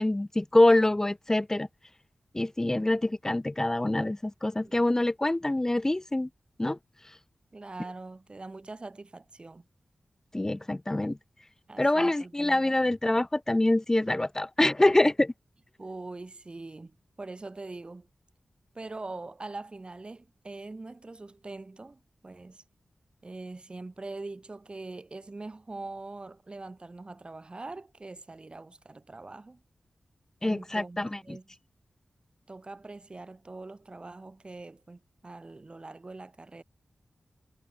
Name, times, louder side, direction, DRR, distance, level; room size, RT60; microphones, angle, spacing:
voice 1, 0.0-1.7 2.3-6.3 6.6-6.8 10.3-11.2 11.8-15.3 30.4-31.4, left 1 dB, 20° left, 0.6 m, -25 dB
voice 2, 7.5-9.7 11.7-13.0 15.8-18.1 18.7-22.6 23.2-29.6 30.4-31.5 32.5-36.6, right 3 dB, 40° right, 4.4 m, -43 dB
cardioid pair, 45°, 3 cm